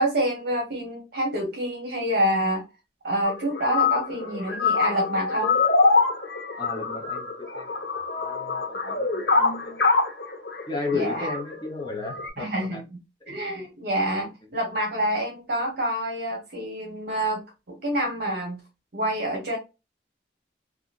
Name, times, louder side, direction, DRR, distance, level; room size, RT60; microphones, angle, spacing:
voice 1, 0.0-2.6 3.0-5.6 10.9-11.3 12.4-12.8 13.3-18.6 18.9-19.6, right 1 dB, 60° right, 0.9 m, -27 dB
sound 1, 3.2-12.3, left 4 dB, 65° left, 1.2 m, -25 dB
voice 2, 6.6-7.8 8.1-9.9 10.7-12.8 13.3-13.4 14.4-14.5, left 4 dB, 25° left, 0.8 m, -34 dB
2.8 x 2.4 x 2.4 m
head